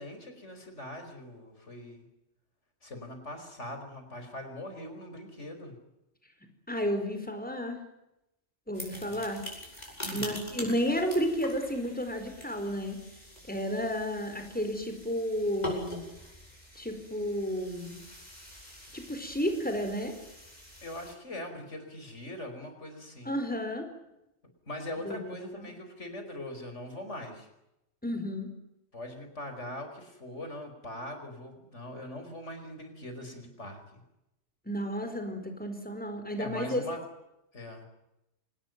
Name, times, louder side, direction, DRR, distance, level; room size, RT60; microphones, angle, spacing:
voice 1, 0.0-2.1 2.8-5.7 8.9-9.2 10.0-10.3 20.8-23.3 24.7-27.5 28.9-34.0 36.4-37.0 37.5-37.9, left 1 dB, 80° left, 7 dB, 5.3 m, -41 dB
voice 2, 6.7-7.8 8.7-9.4 10.1-13.0 13.5-16.0 16.7-18.0 18.9-20.1 23.2-23.9 25.0-25.3 25.6-25.7 28.0-28.5 34.7-36.8, equal, 5° left, 6 dB, 4.5 m, -32 dB
sound 1, 8.7-21.1, equal, 35° left, 7.4 m, -44 dB
26.0 x 19.0 x 9.3 m, 0.89 s
omnidirectional pair, 1.2 m